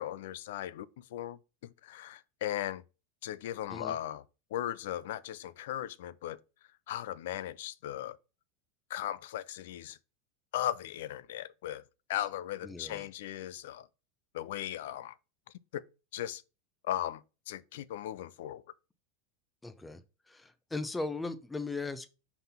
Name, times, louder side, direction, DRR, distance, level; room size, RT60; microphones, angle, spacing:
voice 1, 0.0-2.8 3.2-4.2 4.5-6.4 6.9-8.2 8.9-10.0 10.5-11.8 12.1-13.9 14.3-15.1 15.7-15.8 16.1-16.4 16.8-18.6, left 12 dB, 75° left, 0.4 m, -37 dB
voice 2, 12.6-13.1 19.6-20.0 20.3-22.1, left 3 dB, 10° left, 0.7 m, -38 dB
5.4 x 4.0 x 5.7 m
supercardioid pair, 125°, 0 cm